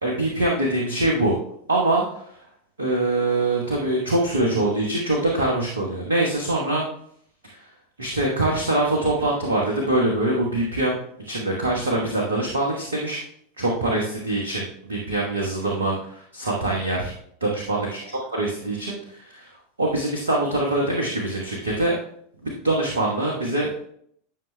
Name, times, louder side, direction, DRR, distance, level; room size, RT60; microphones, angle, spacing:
voice 1, 0.0-1.3 1.7-2.2 2.8-6.8 7.4-7.6 8.0-11.0 11.2-13.2 13.6-17.1 17.4-19.5 19.8-22.0 22.4-23.8, right 2 dB, 75° right, -1 dB, 1.1 m, -24 dB
11.0 x 5.9 x 2.2 m, 0.67 s
figure-of-eight pair, 85°, 0 cm